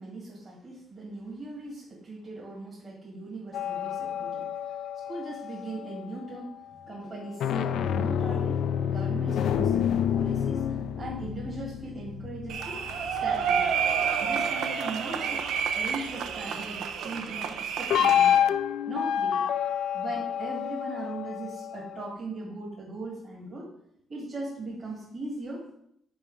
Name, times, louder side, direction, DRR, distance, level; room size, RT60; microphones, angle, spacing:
voice 1, 0.0-4.5 5.1-8.6 8.9-12.8 13.2-13.7 14.2-15.4 15.7-18.4 18.9-19.5 19.9-23.7 24.1-25.8, right 2 dB, 45° right, -4 dB, 2.1 m, -39 dB
sound 1, 3.5-6.2 7.2-14.0 17.9-22.1, left 9 dB, 75° left, 0.3 m, -28 dB
sound 2, 12.5-18.4, right 7 dB, 80° right, 0.5 m, -29 dB
5.4 x 4.5 x 4.7 m, 0.72 s
cardioid pair, 90°, 0 cm